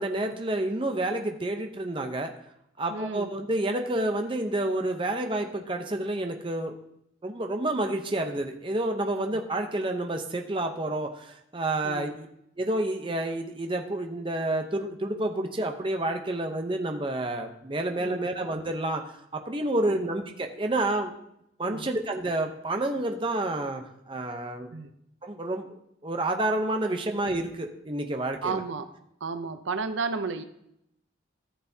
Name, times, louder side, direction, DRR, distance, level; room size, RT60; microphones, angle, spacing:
voice 1, 0.0-2.3 2.8-6.8 7.2-12.3 12.6-19.0 19.3-21.1 21.6-24.7 25.2-28.6, right 1 dB, 25° right, 4 dB, 0.8 m, -29 dB
voice 2, 2.9-3.3 9.3-9.4 11.8-12.1 18.0-18.3 19.9-20.0 21.6-21.9 24.7-24.9 28.4-28.9 29.2-30.4, right 4 dB, 80° right, 9 dB, 0.6 m, -33 dB
14.0 x 6.7 x 2.8 m, 0.77 s
head